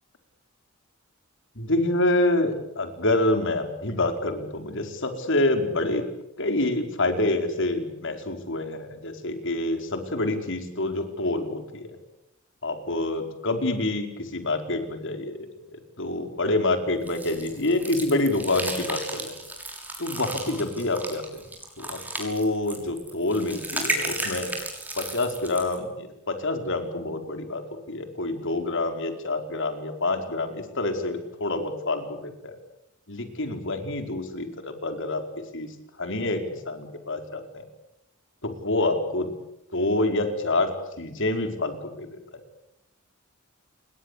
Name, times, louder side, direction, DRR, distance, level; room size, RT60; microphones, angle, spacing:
voice 1, 1.5-6.1 6.4-12.0 12.6-15.4 15.7-19.3 20.0-21.4 21.8-24.5 25.0-32.6 33.1-37.6 38.4-39.3 39.7-40.7 41.0-42.1, left 2 dB, 60° left, 6 dB, 4.9 m, -27 dB
sound 1, 17.1-25.8, right 1 dB, 10° right, 6.3 m, -34 dB
29.5 x 22.0 x 8.5 m, 0.84 s
head